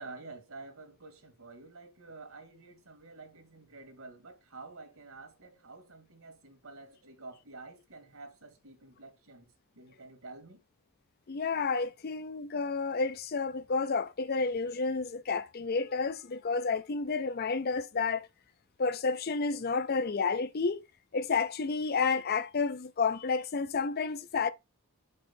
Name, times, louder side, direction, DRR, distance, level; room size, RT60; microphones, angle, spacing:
voice 1, 0.0-10.6, right 3 dB, 70° right, 2.0 m, -49 dB
voice 2, 11.3-18.3 18.8-20.9 21.1-24.5, left 4 dB, 45° left, 0.5 m, -30 dB
5.4 x 4.4 x 5.7 m
head